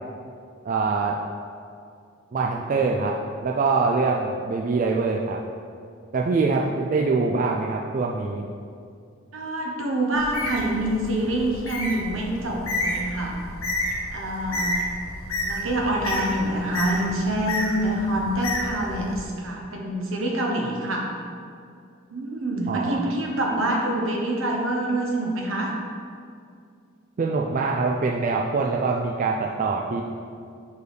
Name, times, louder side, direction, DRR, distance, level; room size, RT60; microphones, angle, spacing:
voice 1, 0.6-1.2 2.3-5.4 6.1-8.5 22.7-23.1 27.2-30.0, right 4 dB, 40° right, 0 dB, 0.3 m, -24 dB
voice 2, 9.3-13.4 14.1-14.8 15.4-21.1 22.1-25.7, right 1 dB, 70° right, -1 dB, 1.0 m, -26 dB
Bird, 10.1-19.2, left 1 dB, 85° left, 1.0 m, -31 dB
4.8 x 4.6 x 4.9 m, 2.4 s
head